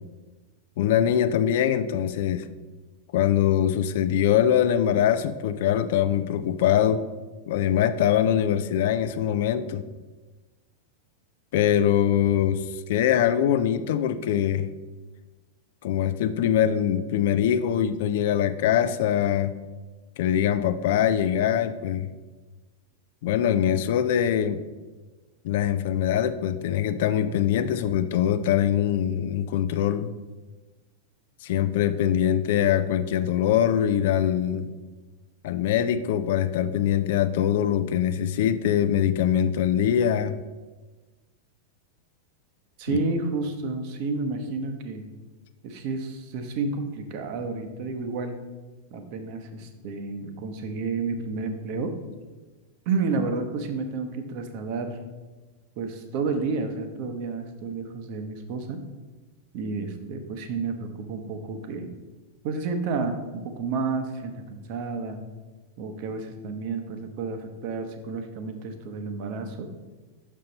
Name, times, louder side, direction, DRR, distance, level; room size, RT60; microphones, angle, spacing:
voice 1, 0.8-2.5 3.1-7.0 7.5-9.8 11.5-14.7 15.8-19.5 20.2-22.1 23.2-24.6 25.4-30.1 31.4-34.7 35.4-40.4 42.9-43.0, left 10 dB, 55° left, 12 dB, 0.3 m, -23 dB
voice 2, 42.8-45.0 45.6-48.4 48.9-51.9 52.9-55.0 55.8-58.8 59.5-61.9 62.4-65.2 65.8-69.7, right 4 dB, 45° right, 7 dB, 0.8 m, -30 dB
6.4 x 5.5 x 3.9 m, 1.2 s
figure-of-eight pair, 90°, 0 cm